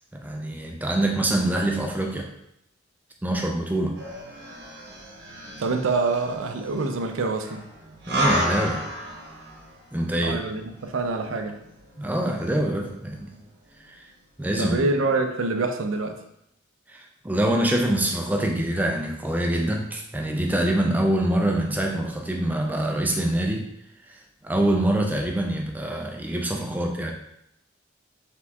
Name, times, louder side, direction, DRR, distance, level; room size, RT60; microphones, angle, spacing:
voice 1, 0.1-2.3 3.2-4.0 8.1-8.8 9.9-10.4 12.0-13.3 13.9-14.1 14.4-14.9 16.9-23.7 24.1-27.1, right 1 dB, 10° right, 1 dB, 0.4 m, -25 dB
sound 1, 4.0-13.4 13.8-13.9, right 1 dB, 65° right, 1.0 m, -33 dB
voice 2, 5.6-7.6 10.2-11.6 14.6-16.2, right 3 dB, 90° right, 5 dB, 0.5 m, -26 dB
4.2 x 3.5 x 2.8 m, 0.78 s
head